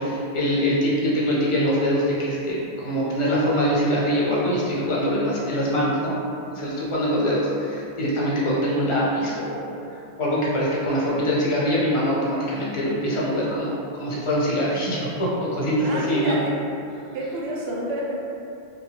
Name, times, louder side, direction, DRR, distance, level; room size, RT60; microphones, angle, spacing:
voice 1, 0.0-6.2 6.5-9.8 10.2-16.4, equal, 45° left, -6 dB, 0.4 m, -23 dB
voice 2, 15.8-16.6 17.1-18.1, right 1 dB, 70° right, -3 dB, 0.8 m, -29 dB
2.6 x 2.3 x 2.8 m, 2.6 s
omnidirectional pair, 1.1 m